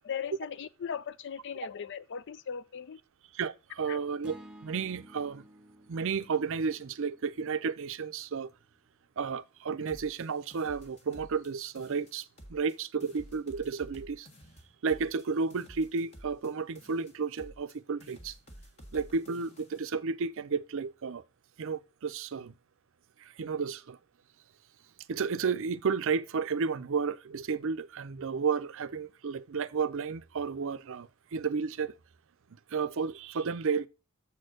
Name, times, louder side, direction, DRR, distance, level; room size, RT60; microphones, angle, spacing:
voice 1, 0.0-3.0 3.9-4.0, left 7 dB, 55° left, 0.5 m, -38 dB
voice 2, 3.3-5.4 5.9-8.5 9.2-14.3 14.8-18.3 18.9-21.2 21.6-22.5 23.2-24.0 25.1-32.0 32.7-33.9, right 5 dB, 60° right, 0.5 m, -32 dB
sound 1, 4.2-8.5, equal, 5° right, 0.6 m, -54 dB
sound 2, 9.9-11.5 11.8-12.8 13.0-16.5 16.8-17.8 18.0-19.9, equal, 30° left, 1.5 m, -52 dB
7.2 x 4.4 x 6.3 m
head